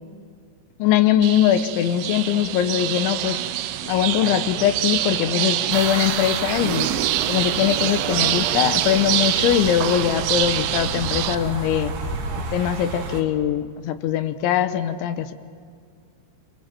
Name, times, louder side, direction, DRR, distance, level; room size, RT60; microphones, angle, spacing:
voice 1, 0.8-3.4 3.8-6.9 7.3-11.9 12.5-15.3, left 10 dB, 80° left, 10 dB, 3.2 m, -21 dB
sound 1, 1.2-11.4, right 13 dB, 85° right, 3.4 m, -25 dB
sound 2, 5.7-13.2, right 3 dB, 65° right, 4.3 m, -32 dB
27.5 x 22.5 x 7.6 m, 2.1 s
omnidirectional pair, 5.6 m